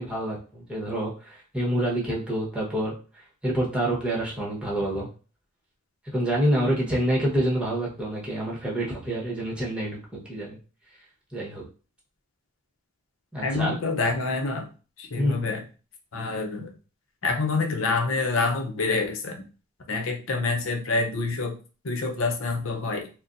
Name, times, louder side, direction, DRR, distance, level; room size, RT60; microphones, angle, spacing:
voice 1, 0.0-2.9 3.4-5.1 6.1-10.6 11.3-11.6 13.3-13.7 15.2-15.6, right 1 dB, 5° right, -4 dB, 1.1 m, -27 dB
voice 2, 13.4-14.7 15.0-15.6 16.1-16.7 17.2-19.4 19.9-21.6 21.8-23.1, left 3 dB, 75° left, 3 dB, 0.7 m, -27 dB
4.1 x 2.1 x 2.6 m, 0.35 s
head